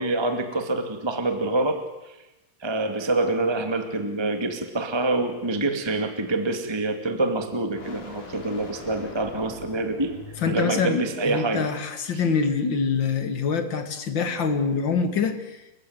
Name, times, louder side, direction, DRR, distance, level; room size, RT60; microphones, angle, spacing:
voice 1, 0.0-2.1 2.6-10.1 10.4-11.7 12.1-12.2, right 2 dB, 10° right, 6 dB, 1.4 m, -26 dB
sound 1, 3.9-10.9, left 3 dB, 60° left, 4.9 m, -45 dB
voice 2, 10.4-15.6, left 5 dB, 40° left, 8 dB, 2.2 m, -25 dB
30.0 x 15.5 x 9.5 m, 1.0 s
omnidirectional pair, 4.1 m